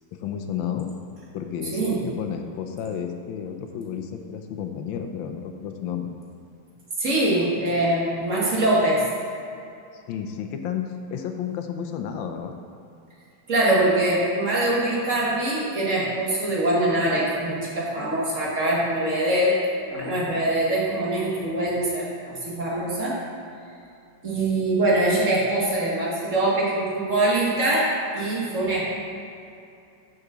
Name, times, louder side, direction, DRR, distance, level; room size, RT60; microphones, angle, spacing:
voice 1, 0.1-0.9 1.3-6.1 9.9-12.6, left 8 dB, 85° left, 5 dB, 1.4 m, -32 dB
voice 2, 1.7-2.0 7.0-9.0 13.5-19.6 19.9-23.2 24.2-28.8, right 1 dB, 40° right, -5 dB, 1.8 m, -23 dB
6.5 x 5.8 x 6.1 m, 2.6 s
omnidirectional pair, 2.1 m